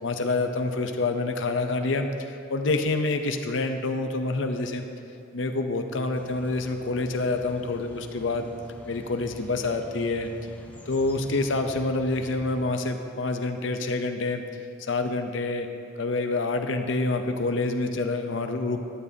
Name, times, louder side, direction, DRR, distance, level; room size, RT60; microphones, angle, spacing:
voice 1, 0.0-4.9 5.3-8.5 8.9-10.3 10.9-14.4 14.9-15.7 16.0-18.8, left 3 dB, 75° left, 6 dB, 0.7 m, -27 dB
sound 1, 6.1-12.6, equal, 10° left, 0.8 m, -46 dB
13.5 x 11.5 x 2.8 m, 2.5 s
head